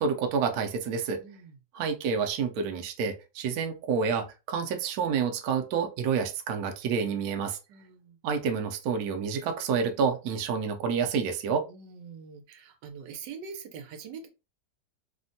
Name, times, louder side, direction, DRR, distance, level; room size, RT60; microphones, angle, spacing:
voice 1, 0.0-1.2 1.7-7.6 8.2-11.6, right 6 dB, 70° right, 5 dB, 1.0 m, -28 dB
voice 2, 1.2-1.6 7.7-8.2 11.7-14.3, right 6 dB, 90° right, 5 dB, 1.3 m, -44 dB
3.4 x 2.1 x 2.6 m, 0.28 s
omnidirectional pair, 1.8 m